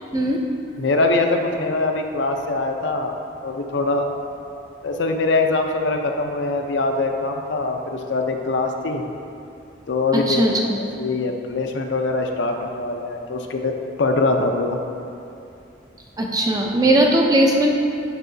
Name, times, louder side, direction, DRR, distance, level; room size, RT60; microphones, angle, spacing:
voice 1, 0.8-3.2 3.4-4.1 4.8-9.0 9.9-10.5 10.7-13.7 14.0-14.8, left 3 dB, 75° left, 4 dB, 0.5 m, -23 dB
voice 2, 10.3-10.8 16.2-17.7, right 1 dB, 20° right, 0 dB, 0.5 m, -18 dB
11.0 x 4.7 x 2.7 m, 2.7 s
head